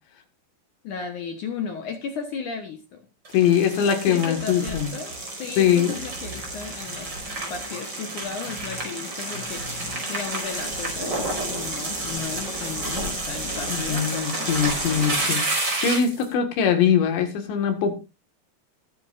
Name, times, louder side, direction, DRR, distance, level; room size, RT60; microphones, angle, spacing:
voice 1, 0.8-3.0 4.1-7.1 7.5-15.4, left 6 dB, 65° left, 6 dB, 2.1 m, -35 dB
voice 2, 3.3-4.9 5.6-6.0 13.7-18.0, left 8 dB, 80° left, 6 dB, 4.2 m, -22 dB
Brake Gravel Med Speed OS, 3.3-16.3, right 2 dB, 25° right, 5.1 m, -30 dB
21.0 x 9.1 x 2.6 m, 0.27 s
omnidirectional pair, 5.1 m